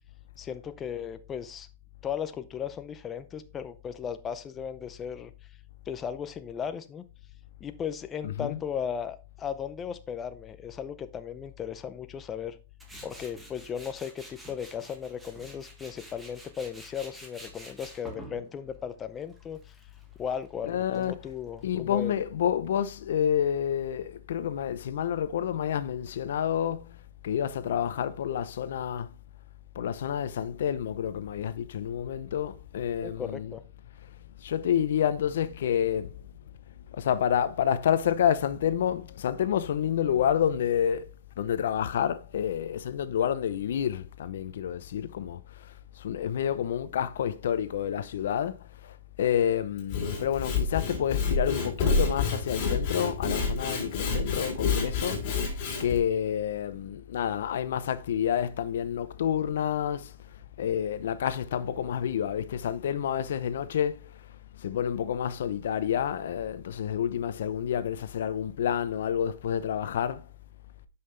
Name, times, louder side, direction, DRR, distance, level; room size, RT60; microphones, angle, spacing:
voice 1, 0.4-1.7 2.0-5.3 5.9-7.0 7.6-12.6 13.0-19.7 20.2-22.1 33.0-33.6, left 8 dB, 20° left, 0.5 m, -36 dB
voice 2, 8.2-8.7 20.6-21.2 21.6-29.1 29.7-33.6 34.0-34.1 34.4-36.2 36.9-41.1 41.4-55.2 55.8-64.3 64.5-70.3, left 9 dB, 65° left, 0.6 m, -29 dB
Tools, 12.8-21.6, right 1 dB, 5° right, 1.6 m, -49 dB
Sawing / Wood, 49.8-56.0, left 4 dB, 40° left, 3.1 m, -28 dB
9.7 x 5.6 x 3.3 m
hypercardioid pair, 150°, 0 cm